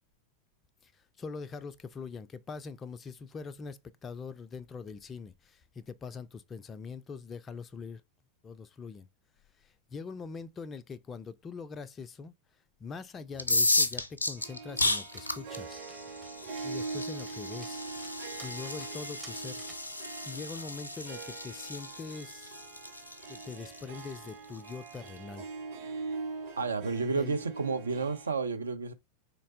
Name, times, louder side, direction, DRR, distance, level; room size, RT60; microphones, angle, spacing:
voice 1, 0.8-8.0 8.4-9.1 9.6-12.3 12.8-15.8 16.6-17.9 18.4-19.6 20.2-22.5 23.3-25.5 27.0-27.4, left 5 dB, 20° left, 0.3 m, -43 dB
sound 1, 13.3-25.1, left 2 dB, 85° left, 0.5 m, -34 dB
Harp, 14.4-28.3, right 4 dB, 50° right, 1.2 m, -43 dB
Dog, 15.1-19.9, right 4 dB, 20° right, 0.7 m, -55 dB
voice 2, 26.6-28.9, right 4 dB, 75° right, 0.5 m, -31 dB
4.0 x 3.2 x 2.6 m
figure-of-eight pair, 90°, 0 cm